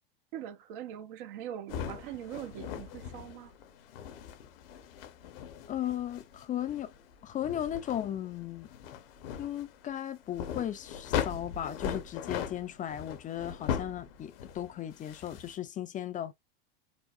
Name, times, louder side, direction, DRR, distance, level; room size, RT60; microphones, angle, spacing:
voice 1, 0.3-3.5, right 11 dB, 60° right, 0.9 m, -42 dB
sound 1, 1.7-15.6, left 8 dB, 65° left, 0.9 m, -39 dB
voice 2, 5.7-6.9 7.2-8.7 9.4-16.3, left 11 dB, 25° left, 0.5 m, -36 dB
4.8 x 2.1 x 2.5 m
hypercardioid pair, 100°, 30 cm